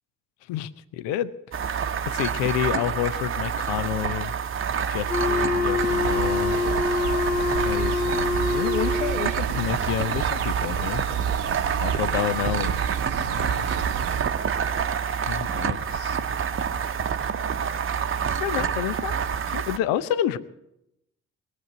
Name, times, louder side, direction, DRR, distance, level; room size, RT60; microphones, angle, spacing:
voice 1, 0.5-1.3 2.1-4.3 4.9-6.6 7.7-11.0 11.8-12.8 13.3-13.7 15.2-16.2 18.3-19.3 19.5-20.4, left 11 dB, 65° left, 16 dB, 0.7 m, -29 dB
sound 1, 1.5-19.8, right 7 dB, 35° right, 0.9 m, -27 dB
Wind instrument woodwind instrument, 5.1-9.4, left 3 dB, 25° left, 2.4 m, -25 dB
sound 2, 5.8-14.2, right 8 dB, 70° right, 0.9 m, -32 dB
20.5 x 7.7 x 8.1 m, 0.82 s
figure-of-eight pair, 40°, 36 cm